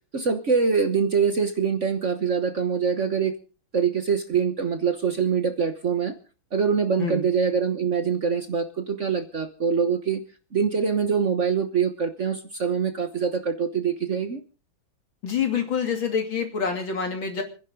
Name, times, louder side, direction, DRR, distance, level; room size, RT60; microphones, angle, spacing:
voice 1, 0.1-3.4 3.7-6.1 6.5-10.2 10.5-14.4, right 6 dB, 40° right, 8 dB, 1.3 m, -24 dB
voice 2, 15.2-17.4, left 6 dB, 70° left, 4 dB, 3.5 m, -26 dB
28.5 x 10.5 x 3.8 m, 0.37 s
omnidirectional pair, 2.2 m